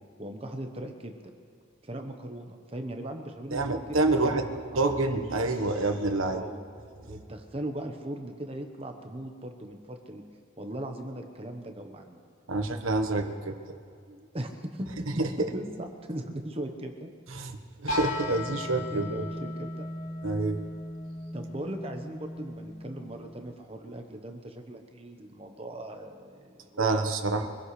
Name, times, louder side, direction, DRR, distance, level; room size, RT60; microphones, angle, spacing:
voice 1, 0.2-1.1 1.8-4.9 6.2-6.6 7.0-10.2 10.6-12.2 14.1-15.1 15.4-17.1 18.9-19.9 21.3-27.5, right 1 dB, 30° right, 4 dB, 1.1 m, -39 dB
voice 2, 3.5-4.5 4.7-6.5 12.5-13.6 15.2-15.3 17.3-17.6 17.8-19.1 20.2-20.6 26.8-27.5, right 2 dB, 85° right, 5 dB, 1.3 m, -27 dB
sound 1, 17.9-23.7, left 1 dB, 75° left, 2.5 m, -37 dB
24.5 x 16.5 x 3.3 m, 2.4 s
head